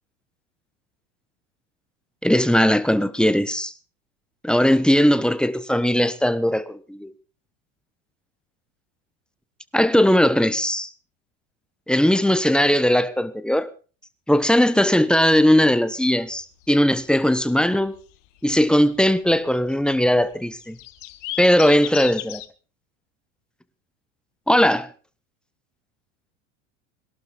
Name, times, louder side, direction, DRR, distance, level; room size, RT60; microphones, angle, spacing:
voice 1, 2.2-3.7 4.4-7.1 9.7-10.9 11.9-13.7 14.3-18.0 18.4-20.8 21.4-22.4 24.5-24.9, equal, ahead, 1.2 m, -19 dB
sound 1, 16.2-22.5, left 15 dB, 70° left, 1.5 m, -37 dB
21.5 x 12.0 x 4.0 m
hypercardioid pair, 85°, 38 cm